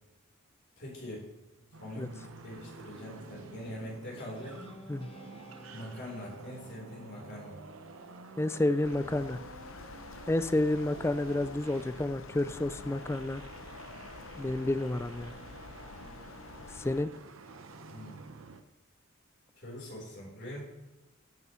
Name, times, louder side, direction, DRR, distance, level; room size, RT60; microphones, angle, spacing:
voice 1, 0.8-1.3 1.8-4.7 5.7-7.6 17.9-18.2 19.5-20.6, equal, 55° left, -3 dB, 4.0 m, -43 dB
sound 1, 1.7-18.6, right 3 dB, 80° right, 0.9 m, -50 dB
Guitar, 4.2-8.9, right 1 dB, 25° left, 1.0 m, -54 dB
voice 2, 8.4-9.4 10.3-13.4 14.4-15.3 16.7-17.1, left 2 dB, 10° left, 13 dB, 0.3 m, -30 dB
sound 2, 8.8-17.0, left 4 dB, 75° left, 0.7 m, -48 dB
13.5 x 9.3 x 3.2 m, 1.1 s
head